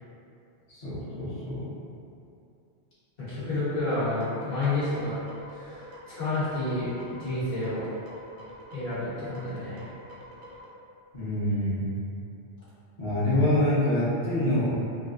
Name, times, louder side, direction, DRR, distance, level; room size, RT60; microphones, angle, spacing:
voice 1, 0.7-1.7 11.1-11.8 13.0-14.8, left 1 dB, 35° left, -13 dB, 0.9 m, -26 dB
voice 2, 3.2-5.2 5.5-7.8 8.7-9.9, left 2 dB, 55° left, -12 dB, 1.2 m, -30 dB
sound 1, 3.8-10.6, equal, 90° right, 1.0 m, -47 dB
3.3 x 2.4 x 2.5 m, 2.6 s
omnidirectional pair, 1.2 m